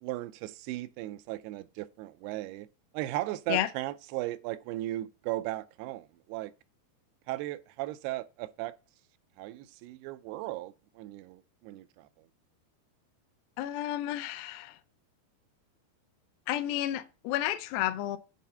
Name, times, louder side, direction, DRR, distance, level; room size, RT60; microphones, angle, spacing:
voice 1, 0.0-2.7 2.9-6.5 7.3-8.8 9.4-12.3, right 16 dB, 90° right, 2.6 m, -37 dB
voice 2, 13.6-14.8 16.5-18.2, left 13 dB, 80° left, 2.4 m, -31 dB
8.3 x 4.1 x 5.5 m
omnidirectional pair, 4.5 m